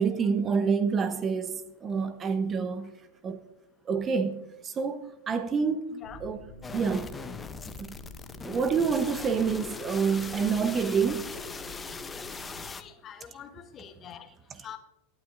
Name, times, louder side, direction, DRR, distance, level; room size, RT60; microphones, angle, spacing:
voice 1, 0.0-2.9 3.2-3.4 3.9-5.0 5.3-6.5 6.7-7.1 7.8-7.9 8.4-11.3, right 5 dB, 30° right, 0.9 m, -27 dB
voice 2, 5.9-6.2 12.8-14.3 14.6-14.8, left 9 dB, 35° left, 1.1 m, -45 dB
sound 1, 6.0-12.7, left 1 dB, 60° right, 2.4 m, -48 dB
sound 2, 6.6-12.8, left 4 dB, 15° left, 0.7 m, -40 dB
17.5 x 9.6 x 2.6 m
hypercardioid pair, 95°, 0 cm